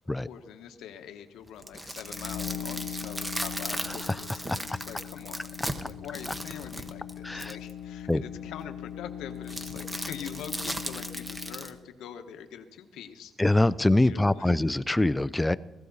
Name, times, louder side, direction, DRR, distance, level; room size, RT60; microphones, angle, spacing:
voice 1, 0.2-5.6 5.8-13.7 13.9-14.5, left 8 dB, 90° left, 7 dB, 1.0 m, -44 dB
sound 1, 1.5-7.7 9.5-11.7, right 1 dB, 10° right, 1.0 m, -37 dB
sound 2, 1.9-11.8, left 9 dB, 60° left, 0.8 m, -40 dB
voice 2, 7.2-7.6 8.1-8.2 13.4-15.6, left 1 dB, 10° left, 17 dB, 0.4 m, -24 dB
16.0 x 15.0 x 4.0 m, 1.0 s
cardioid pair, 125°, 0 cm